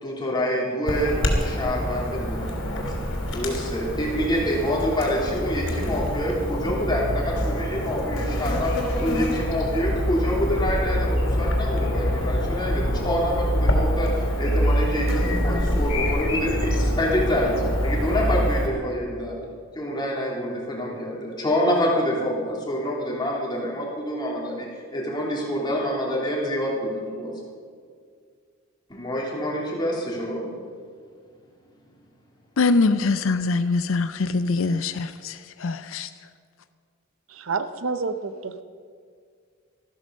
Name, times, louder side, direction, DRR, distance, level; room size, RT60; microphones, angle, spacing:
voice 1, 0.0-3.0 3.3-8.7 9.0-17.5 17.8-19.4 19.7-27.4 28.9-30.5, equal, 20° left, 3.1 m, -27 dB
Chirp tweet / Buzz, 0.9-18.7, equal, 85° left, 3.0 m, -25 dB
voice 2, 32.6-36.1, left 3 dB, 70° left, 0.5 m, -23 dB
voice 3, 37.3-38.6, right 4 dB, 85° right, 0.7 m, -29 dB
13.5 x 13.0 x 5.3 m
head